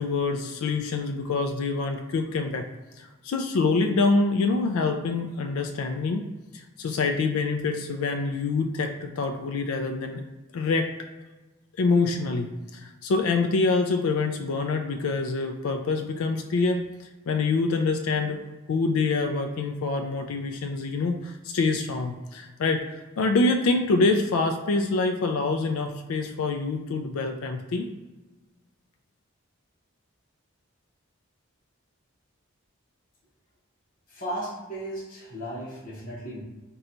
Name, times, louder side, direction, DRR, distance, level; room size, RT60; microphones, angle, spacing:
voice 1, 0.0-2.6 3.0-10.2 10.5-10.9 11.8-18.4 18.7-27.9, left 3 dB, 80° left, 5 dB, 0.4 m, -26 dB
voice 2, 34.1-36.4, right 1 dB, 40° left, -5 dB, 0.8 m, -35 dB
3.8 x 2.3 x 4.2 m, 1.2 s
head